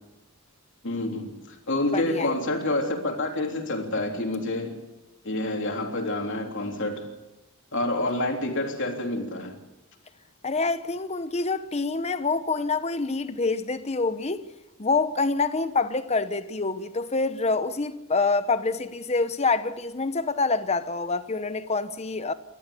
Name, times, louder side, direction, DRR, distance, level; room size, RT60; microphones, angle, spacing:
voice 1, 0.8-4.8 5.2-7.0 7.7-9.6, left 2 dB, 55° left, 3.4 m, -28 dB
voice 2, 1.9-2.3 10.4-14.5 14.8-22.3, left 3 dB, 30° left, 0.9 m, -26 dB
29.0 x 13.5 x 8.4 m
head